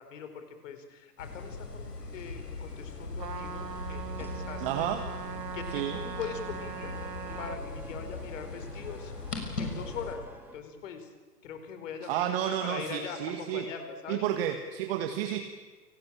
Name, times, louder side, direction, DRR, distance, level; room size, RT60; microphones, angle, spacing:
voice 1, 0.0-4.9 5.5-7.0 7.4-9.1 9.6-10.2 10.5-11.1 11.4-14.2, left 6 dB, 50° left, 8 dB, 4.4 m, -41 dB
sound 1, 1.2-10.1, left 3 dB, 70° left, 6.5 m, -40 dB
sound 2, 3.2-10.6, right 2 dB, 5° right, 2.9 m, -50 dB
Trumpet, 3.2-7.6, right 7 dB, 75° right, 1.8 m, -40 dB
voice 2, 4.6-5.0 5.7-6.0 12.1-13.7 14.1-15.4, right 11 dB, 35° right, 6 dB, 1.9 m, -31 dB
29.0 x 18.5 x 8.9 m, 1.3 s
figure-of-eight pair, 120°, 49 cm